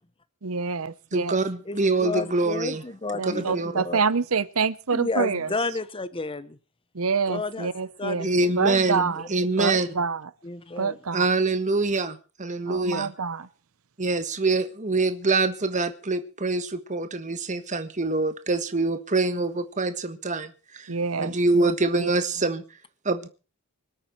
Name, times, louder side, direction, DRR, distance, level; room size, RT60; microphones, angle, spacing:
voice 1, 0.4-1.4 3.2-5.5 6.9-8.3 8.5-9.3 9.6-10.3 10.8-11.3 12.6-13.5 20.9-21.7 22.0-22.1, right 5 dB, 70° right, 0.8 m, -27 dB
voice 2, 1.1-2.8 3.2-3.8 8.2-9.9 11.1-13.1 14.0-20.9 21.2-22.6 23.0-23.3, right 3 dB, 35° right, 1.4 m, -25 dB
voice 3, 1.7-4.0 4.9-6.6 7.3-7.7 8.0-9.0 10.4-11.0, left 3 dB, 25° left, 0.9 m, -32 dB
25.5 x 8.8 x 4.6 m
head